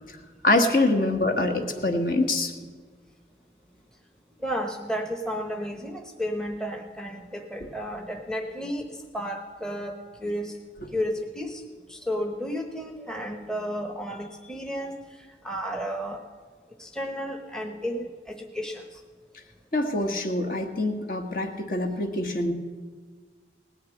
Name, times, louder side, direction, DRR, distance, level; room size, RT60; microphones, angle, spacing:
voice 1, 0.4-2.5 19.7-22.5, left 2 dB, 50° left, 4 dB, 1.3 m, -24 dB
voice 2, 4.4-10.6 10.9-11.6 11.9-16.2 16.8-19.0, equal, 5° left, 4 dB, 0.8 m, -33 dB
18.5 x 6.6 x 9.2 m, 1.5 s
head